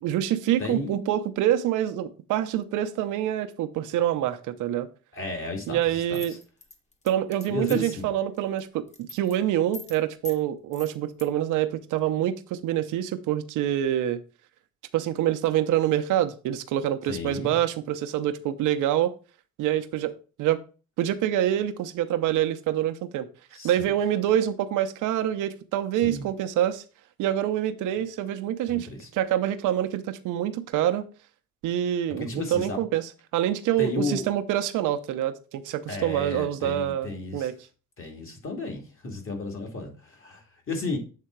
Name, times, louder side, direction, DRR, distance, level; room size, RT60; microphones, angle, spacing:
voice 1, 0.0-4.9 5.7-6.3 7.0-14.2 14.9-19.1 19.6-20.6 21.0-23.3 23.6-26.8 27.2-28.9 29.1-31.1 31.6-37.5, right 11 dB, 90° right, 0.7 m, -26 dB
voice 2, 0.6-1.0 5.1-6.4 7.5-8.1 17.1-17.5 23.6-23.9 26.0-26.3 28.7-29.1 32.2-32.8 33.8-34.3 35.9-37.5 38.0-41.0, left 2 dB, 45° left, 2.4 m, -33 dB
sound 1, 6.1-8.0 8.4-8.6 8.9-9.4 9.7-10.0 10.2-10.4 10.7-11.3, left 3 dB, 25° left, 1.2 m, -41 dB
7.6 x 3.7 x 4.5 m
cardioid pair, 90°, 30 cm